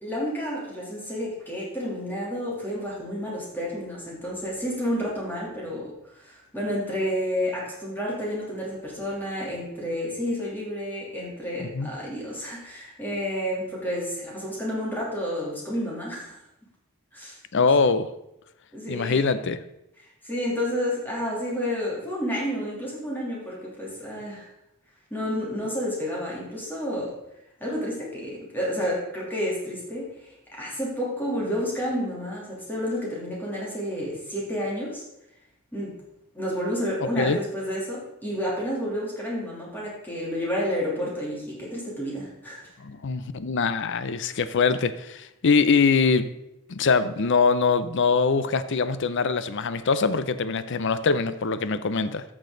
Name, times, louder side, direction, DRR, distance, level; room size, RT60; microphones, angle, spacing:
voice 1, 0.0-16.4 17.1-17.4 18.7-19.3 20.0-24.4 25.1-27.2 27.6-35.0 35.7-36.0 36.3-42.7, equal, 10° left, -5 dB, 3.1 m, -30 dB
voice 2, 11.6-11.9 17.5-18.1 18.9-19.6 37.2-37.4 42.8-46.3 46.7-52.2, left 4 dB, 60° left, 13 dB, 0.6 m, -23 dB
13.0 x 6.3 x 3.9 m, 0.86 s
head